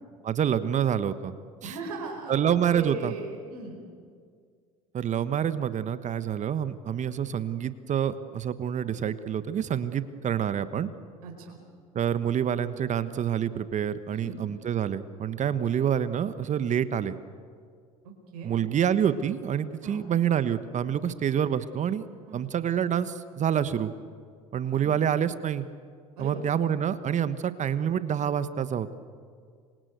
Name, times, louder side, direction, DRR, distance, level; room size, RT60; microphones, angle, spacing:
voice 1, 0.2-1.3 1.6-1.7 2.3-3.1 4.9-10.9 11.9-17.1 18.4-22.1 22.3-23.9 24.5-25.7 26.2-28.9, right 9 dB, 40° right, 13 dB, 1.2 m, -27 dB
voice 2, 1.6-3.8 11.2-11.6 14.1-14.4 18.3-18.6 19.8-20.1 22.2-22.5 26.2-26.4, right 3 dB, 75° right, 1 dB, 5.0 m, -38 dB
27.0 x 25.0 x 8.1 m, 2.1 s
hypercardioid pair, 70°, 19 cm